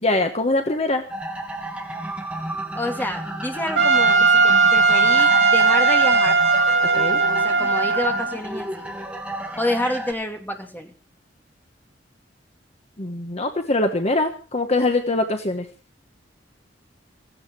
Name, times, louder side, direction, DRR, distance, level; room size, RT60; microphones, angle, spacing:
voice 1, 0.0-1.0 6.9-7.2 13.0-15.6, left 2 dB, 35° left, 6 dB, 1.3 m, -23 dB
sound 1, 1.1-10.1, right 1 dB, 5° right, 2.6 m, -32 dB
voice 2, 2.7-6.4 7.3-8.8 9.6-10.9, left 1 dB, 10° left, 3 dB, 2.8 m, -28 dB
Trumpet, 3.8-8.4, right 4 dB, 85° right, 2.8 m, -17 dB
17.5 x 15.5 x 4.7 m, 0.37 s
head